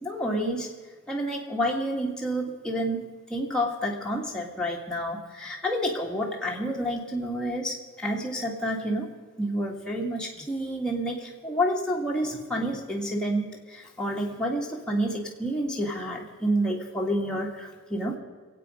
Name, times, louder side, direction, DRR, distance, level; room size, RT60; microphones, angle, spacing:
voice 1, 0.0-0.7 1.1-9.1 9.4-18.2, equal, 5° left, -2 dB, 1.8 m, -29 dB
23.5 x 8.6 x 5.0 m, 1.4 s
head